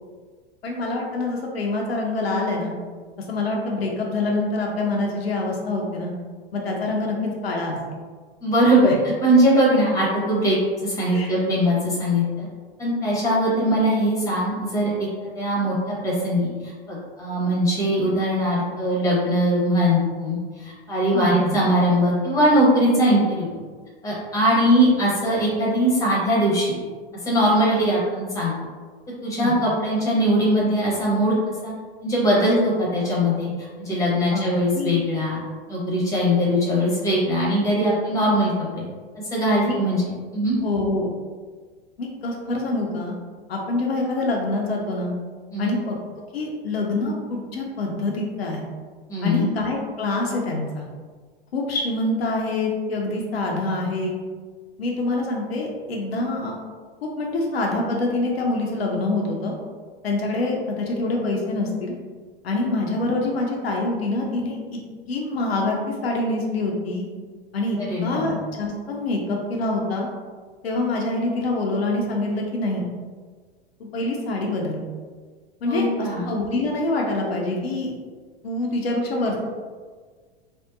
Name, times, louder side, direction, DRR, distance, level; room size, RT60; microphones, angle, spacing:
voice 1, 0.6-2.7 3.2-6.1 6.5-7.2 7.4-7.8 11.1-11.4 21.1-21.5 29.4-29.6 34.3-35.0 39.6-39.8 40.6-41.1 42.0-43.2 43.5-45.1 45.6-46.0 46.3-48.7 49.2-50.8 51.5-54.2 54.8-56.6 57.0-59.5 60.0-61.9 62.4-64.8 65.1-67.1 67.5-70.1 70.6-72.8 73.8-74.8 75.6-77.9 78.4-79.4, left 2 dB, 75° left, -1 dB, 0.5 m, -25 dB
voice 2, 8.4-8.9 9.2-12.5 12.8-16.5 16.9-23.6 24.0-26.8 27.2-28.5 29.2-31.3 31.6-31.7 32.0-33.5 33.8-35.4 35.7-38.8 39.3-40.0 40.3-40.6 45.5-45.8 49.1-49.5 67.9-68.4 75.6-76.3, equal, 10° left, -5 dB, 0.8 m, -21 dB
2.6 x 2.0 x 2.4 m, 1.5 s
figure-of-eight pair, 90°, 31 cm